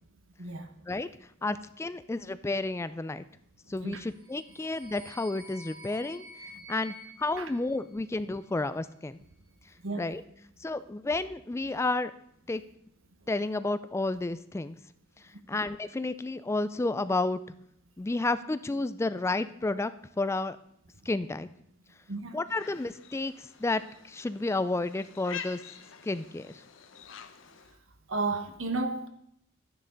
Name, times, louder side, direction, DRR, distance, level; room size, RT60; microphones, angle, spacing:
voice 1, 0.4-0.7 3.8-4.0 6.5-6.6 7.4-7.5 9.8-10.1 15.5-15.6 22.1-22.4 28.1-29.1, right 3 dB, 85° right, 1.3 m, -33 dB
voice 2, 1.4-3.2 3.7-6.2 6.7-9.2 10.0-10.2 10.6-12.1 12.5-12.6 13.3-14.8 15.5-17.4 18.0-19.9 20.2-20.6 21.1-21.5 22.3-25.6 26.0-26.6, left 2 dB, 15° left, 0.3 m, -31 dB
sound 1, 4.1-8.4, equal, 25° right, 3.3 m, -50 dB
sound 2, 22.5-27.8, left 8 dB, 70° left, 0.8 m, -47 dB
12.0 x 9.9 x 3.9 m
head